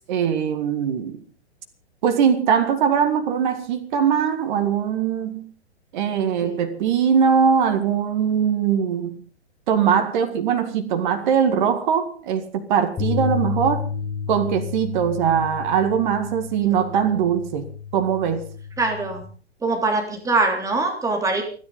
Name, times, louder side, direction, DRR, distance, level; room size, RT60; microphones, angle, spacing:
voice 1, 0.1-1.2 2.0-5.5 5.9-9.2 9.7-13.9 14.3-18.5, right 7 dB, 45° right, 2.1 m, -21 dB
sound 1, 13.0-19.2, left 8 dB, 10° left, 4.7 m, -31 dB
voice 2, 16.9-17.3 18.8-19.3 19.6-21.4, right 3 dB, 10° right, 3.3 m, -23 dB
29.5 x 10.5 x 3.9 m
figure-of-eight pair, 120°, 34 cm